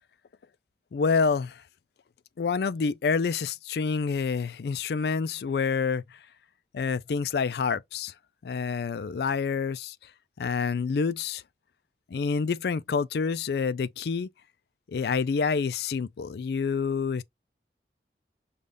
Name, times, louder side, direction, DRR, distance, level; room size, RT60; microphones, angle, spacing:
voice 1, 0.9-1.5 2.4-6.0 6.7-8.1 8.4-9.9 10.4-11.4 12.1-14.3 14.9-17.2, left 5 dB, 65° left, 0.4 m, -27 dB
5.3 x 2.4 x 3.3 m
head